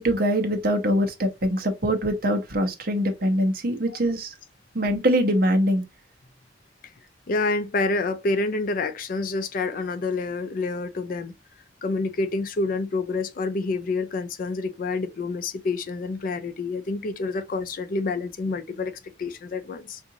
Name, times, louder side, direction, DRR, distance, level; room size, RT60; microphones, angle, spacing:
voice 1, 0.0-4.3 4.7-5.8, equal, 55° right, 0.9 m, -23 dB
voice 2, 7.3-11.3 11.8-20.0, left 3 dB, 50° left, 0.4 m, -28 dB
3.6 x 2.5 x 2.8 m
head